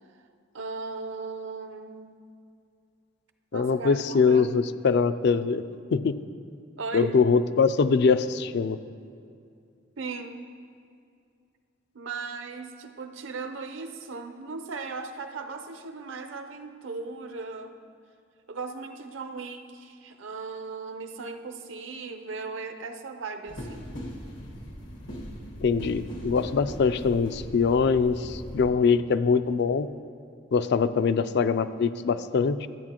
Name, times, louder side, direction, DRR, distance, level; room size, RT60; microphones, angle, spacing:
voice 1, 0.5-2.2 3.5-4.5 6.8-7.1 10.0-10.5 11.9-17.8 18.5-23.9, right 4 dB, 75° right, 6 dB, 0.6 m, -37 dB
voice 2, 3.5-5.6 5.9-6.2 6.9-8.8 25.6-29.9 30.5-32.7, left 5 dB, 60° left, 13 dB, 0.3 m, -23 dB
sound 1, 23.5-28.7, equal, 85° left, 1.5 m, -39 dB
13.5 x 8.7 x 2.9 m, 2.4 s
head